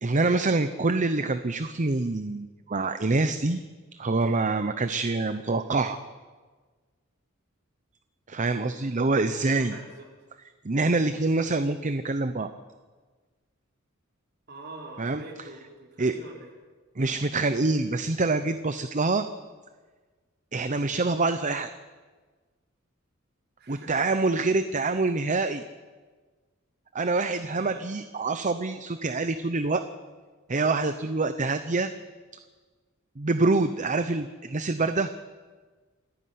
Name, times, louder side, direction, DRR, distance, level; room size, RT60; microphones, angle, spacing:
voice 1, 0.0-3.6 4.0-6.0 8.3-9.7 10.6-12.5 15.0-15.2 16.0-16.1 17.0-19.2 20.5-21.7 23.7-25.6 26.9-29.8 30.5-31.9 33.2-35.1, right 3 dB, 35° right, 10 dB, 0.8 m, -26 dB
voice 2, 9.2-10.0 14.5-16.5 23.6-24.0 27.5-27.9, right 2 dB, 55° right, 0 dB, 4.4 m, -45 dB
27.5 x 10.0 x 9.5 m, 1.4 s
head